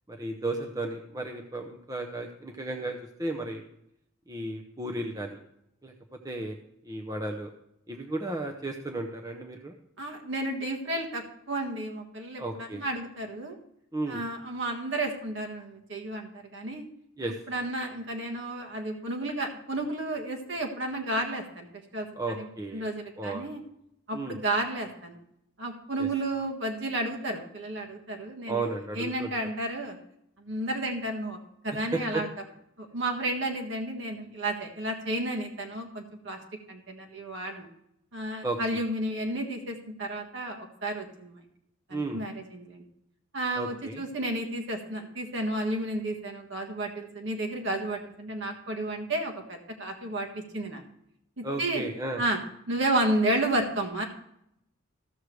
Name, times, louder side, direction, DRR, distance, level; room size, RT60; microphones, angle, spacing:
voice 1, 0.1-3.6 4.3-5.4 5.8-5.9 6.2-6.6 6.8-7.5 7.9-9.7 12.4-12.8 13.9-14.2 17.2-17.4 22.1-22.8 23.2-23.5 24.1-24.4 26.0-26.1 28.5-29.3 31.9-32.2 38.4-38.8 41.9-42.2 43.6-44.0 51.4-52.2, right 2 dB, 20° right, 2 dB, 0.7 m, -34 dB
voice 2, 10.0-13.6 14.1-16.8 17.5-21.7 21.9-22.5 22.7-23.6 24.1-25.2 25.6-28.6 28.9-30.0 30.4-31.4 31.6-32.3 32.8-36.4 36.7-37.7 38.1-41.4 41.9-42.8 43.3-50.8 51.4-51.8 52.2-52.4 52.7-54.0, right 1 dB, 60° right, 2 dB, 1.5 m, -32 dB
15.0 x 6.5 x 3.2 m, 0.77 s
head